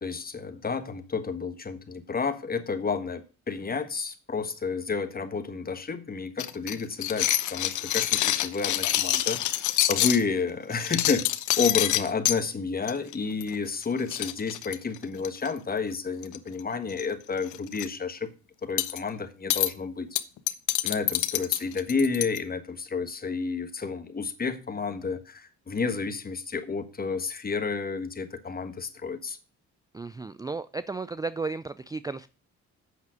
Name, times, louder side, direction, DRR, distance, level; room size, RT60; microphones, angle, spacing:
voice 1, 0.0-11.2 11.6-18.3 18.6-20.1 20.8-29.4, left 5 dB, 30° left, 1.4 m, -31 dB
sound 1, 6.4-10.2 10.7-12.4 12.9-13.1 13.4-13.5 13.8-13.9 14.1-15.5 16.2-16.6 16.9-17.1 17.4-17.9 18.8-19.0 19.5-19.7 20.2-22.4, left 13 dB, 80° left, 0.8 m, -26 dB
voice 2, 29.9-32.3, right 4 dB, 15° right, 0.4 m, -34 dB
8.4 x 5.9 x 6.2 m
cardioid pair, 90°, 30 cm